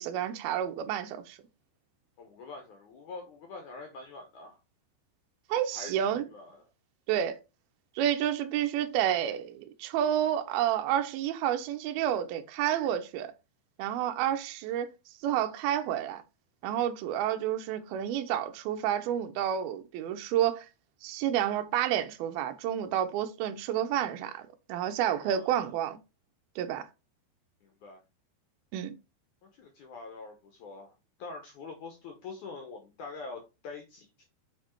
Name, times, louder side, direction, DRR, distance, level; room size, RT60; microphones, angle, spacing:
voice 1, 0.0-1.4 5.5-6.2 7.1-7.4 8.0-13.3 13.8-14.9 15.2-16.2 16.6-20.7 21.0-24.4 24.7-26.0 26.6-26.8 28.7-28.9, right 10 dB, 75° right, 2.4 m, -30 dB
voice 2, 2.2-4.6 5.7-6.6 25.2-25.8 27.6-28.0 29.4-30.9 31.2-34.3, left 3 dB, 70° left, 1.9 m, -45 dB
7.2 x 4.7 x 4.5 m
omnidirectional pair, 4.9 m